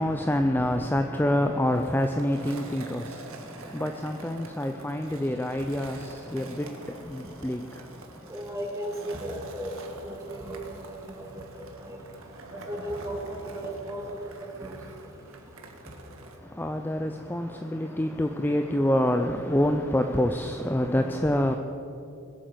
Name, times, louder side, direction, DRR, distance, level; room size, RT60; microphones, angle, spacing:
voice 1, 0.0-8.3 16.4-21.6, left 1 dB, 10° left, 6 dB, 0.5 m, -27 dB
Skateboard, 1.7-16.4, right 2 dB, 75° right, 1.8 m, -46 dB
voice 2, 8.3-9.7 10.0-10.6 11.2-11.3 11.6-12.0 12.7-14.0 14.6-14.8, right 1 dB, 15° right, 0 dB, 2.2 m, -35 dB
20.5 x 8.5 x 7.9 m, 2.7 s
head